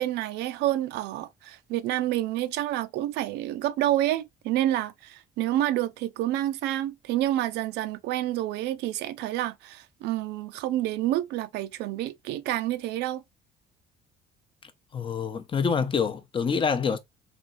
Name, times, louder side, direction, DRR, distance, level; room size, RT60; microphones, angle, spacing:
voice 1, 0.0-13.2, right 13 dB, 85° right, 0.5 m, -28 dB
voice 2, 14.9-17.0, left 6 dB, 30° left, 0.6 m, -26 dB
3.4 x 3.0 x 2.5 m
cardioid pair, 110°, 17 cm